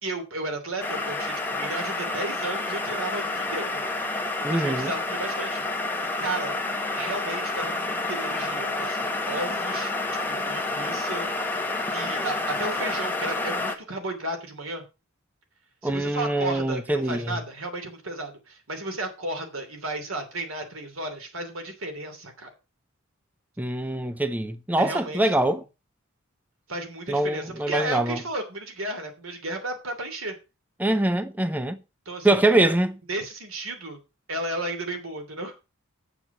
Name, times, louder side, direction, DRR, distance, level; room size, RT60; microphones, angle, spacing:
voice 1, 0.0-3.8 4.5-5.6 6.2-6.5 6.9-11.3 11.9-14.8 15.8-22.5 24.8-25.6 26.7-30.3 32.0-32.4 33.1-34.0 34.3-35.5, right 2 dB, 85° right, 2.9 m, -33 dB
sound 1, 0.8-13.8, left 2 dB, 10° left, 1.3 m, -29 dB
voice 2, 4.4-4.9 15.8-17.4 23.6-25.6 27.1-28.2 30.8-31.8 32.2-33.0, right 1 dB, 10° right, 0.5 m, -24 dB
8.0 x 7.2 x 5.8 m
head